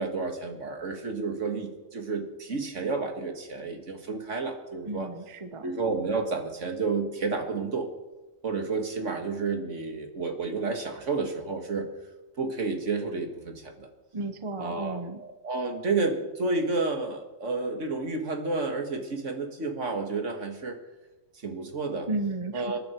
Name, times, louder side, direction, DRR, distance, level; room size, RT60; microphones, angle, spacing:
voice 1, 0.0-5.1 5.6-7.9 8.4-11.9 12.4-13.9 14.6-20.8 21.4-22.1 22.5-22.8, right 3 dB, 65° right, 4 dB, 2.2 m, -31 dB
voice 2, 4.9-5.6 14.1-15.2 22.1-22.8, right 2 dB, 25° right, 8 dB, 0.9 m, -33 dB
26.5 x 11.0 x 4.5 m, 1.1 s
omnidirectional pair, 1.4 m